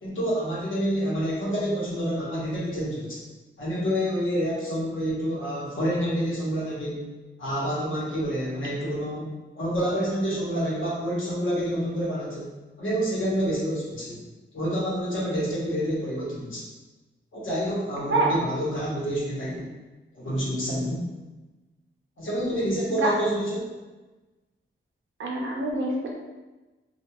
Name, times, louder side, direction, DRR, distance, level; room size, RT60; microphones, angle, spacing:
voice 1, 0.0-3.2 3.6-7.1 7.4-9.3 9.5-12.5 12.8-14.2 14.5-16.6 17.3-19.7 20.1-21.0 22.2-23.7, equal, 70° left, -6 dB, 1.0 m, -28 dB
voice 2, 25.2-26.1, right 2 dB, 70° right, -1 dB, 0.6 m, -25 dB
2.8 x 2.3 x 2.3 m, 1.2 s
wide cardioid pair, 110°, 21 cm